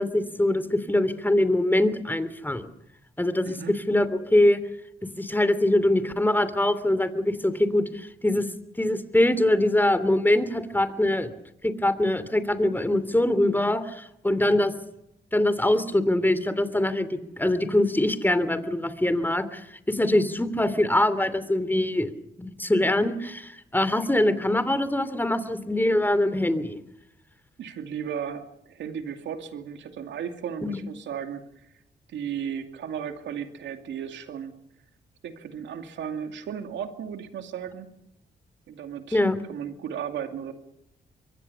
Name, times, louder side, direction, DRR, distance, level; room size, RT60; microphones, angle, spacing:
voice 1, 0.0-2.7 3.2-4.1 4.3-4.6 5.0-8.4 8.8-11.3 11.6-14.7 15.3-22.1 22.4-26.8 30.6-30.8 39.1-39.4, left 1 dB, 10° left, 13 dB, 2.9 m, -23 dB
voice 2, 3.4-3.8 27.6-31.7 32.1-34.6 35.2-37.9 38.7-39.2 39.5-40.5, right 8 dB, 85° right, 7 dB, 2.5 m, -35 dB
25.5 x 22.5 x 7.0 m, 0.80 s
cardioid pair, 65°, 19 cm